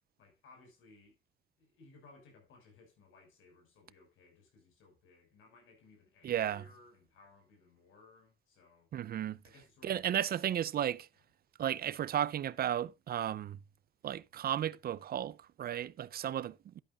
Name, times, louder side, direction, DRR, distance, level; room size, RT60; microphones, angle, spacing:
voice 1, 0.2-1.2 1.6-8.9 9.4-10.4, left 3 dB, 85° left, 5.3 m, -61 dB
voice 2, 6.2-6.6 8.9-9.4 9.8-11.1 11.6-13.6 14.0-16.8, right 10 dB, 50° right, 0.4 m, -34 dB
11.5 x 10.5 x 2.4 m
cardioid pair, 90°, 20 cm